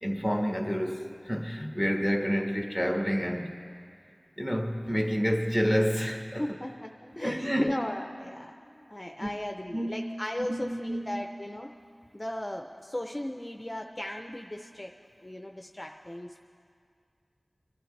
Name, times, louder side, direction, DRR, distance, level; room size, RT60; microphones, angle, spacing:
voice 1, 0.0-3.5 4.4-6.4 7.2-7.7 9.2-9.3 9.7-10.0 10.5-11.2, equal, 10° right, 2 dB, 1.5 m, -29 dB
voice 2, 6.4-11.7 12.1-14.9 15.2-16.4, left 1 dB, 25° left, 3 dB, 0.6 m, -36 dB
26.5 x 11.5 x 3.3 m, 2.3 s
wide cardioid pair, 55°, 0 cm